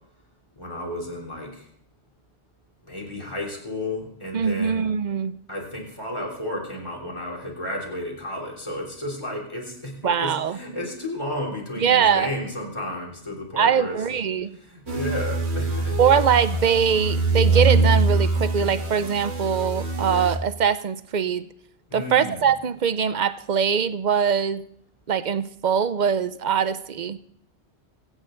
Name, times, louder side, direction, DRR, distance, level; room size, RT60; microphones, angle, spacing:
voice 1, 0.6-1.6 2.9-4.9 5.5-14.0 14.7-16.0 21.9-22.4, left 1 dB, 25° left, -1 dB, 3.5 m, -32 dB
voice 2, 4.3-5.3 10.0-10.6 11.8-12.3 13.6-14.5 16.0-21.5 21.9-24.6 25.1-27.2, right 7 dB, 50° right, 14 dB, 0.7 m, -22 dB
sound 1, 14.9-20.4, right 3 dB, 80° right, 1.8 m, -23 dB
25.0 x 9.1 x 3.9 m, 0.67 s
omnidirectional pair, 1.1 m